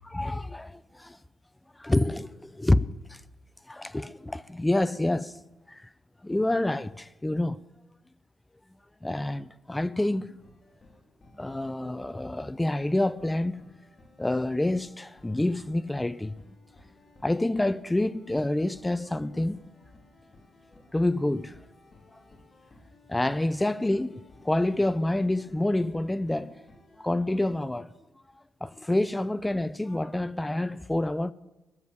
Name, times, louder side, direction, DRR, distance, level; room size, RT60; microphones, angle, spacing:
voice 1, 0.1-1.2 1.8-3.2 3.7-5.4 5.7-5.8 6.2-7.6 9.0-10.4 11.4-13.6 14.2-16.4 17.2-19.6 20.9-21.6 23.1-26.5 27.0-27.9 28.6-31.3, left 1 dB, 10° left, 0.5 m, -27 dB
sound 1, 10.4-27.3, left 2 dB, 35° left, 2.8 m, -57 dB
18.5 x 7.2 x 9.7 m
cardioid pair, 90°, 0 cm